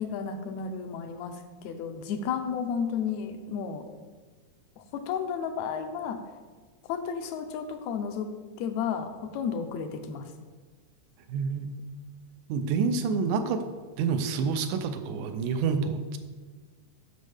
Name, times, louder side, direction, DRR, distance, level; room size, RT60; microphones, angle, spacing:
voice 1, 0.0-3.9 4.8-6.2 6.9-10.3, left 6 dB, 75° left, 6 dB, 1.9 m, -33 dB
voice 2, 11.3-11.7 12.5-13.7 14.0-16.2, right 5 dB, 85° right, 8 dB, 2.1 m, -28 dB
9.2 x 6.3 x 3.5 m, 1.4 s
omnidirectional pair, 3.5 m